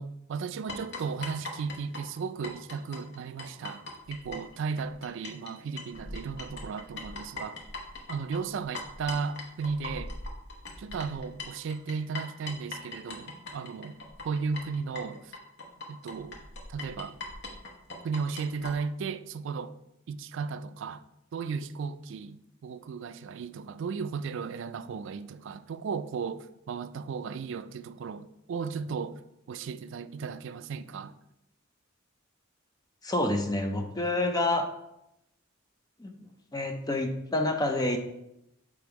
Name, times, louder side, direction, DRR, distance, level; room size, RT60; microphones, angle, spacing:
voice 1, 0.0-7.6 8.1-10.1 10.8-14.0 14.2-15.3 15.9-16.4 16.7-17.2 18.0-19.7 20.1-21.0 21.3-29.2 29.5-31.1, right 5 dB, 65° right, 0.3 m, -35 dB
sound 1, 0.7-5.5 5.8-18.7, left 3 dB, 55° left, 1.1 m, -41 dB
voice 2, 33.0-34.7 36.0-36.1 36.5-38.0, left 2 dB, 20° left, 0.5 m, -28 dB
6.9 x 3.5 x 4.6 m
head